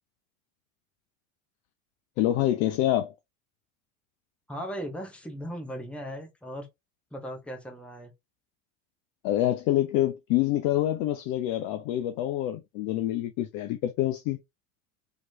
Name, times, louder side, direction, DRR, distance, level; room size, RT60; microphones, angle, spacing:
voice 1, 2.2-3.1 9.2-14.4, left 13 dB, 40° left, 0.4 m, -26 dB
voice 2, 4.5-6.7 7.1-8.1, equal, 5° left, 0.9 m, -37 dB
3.0 x 2.8 x 2.3 m
figure-of-eight pair, 75°, 43 cm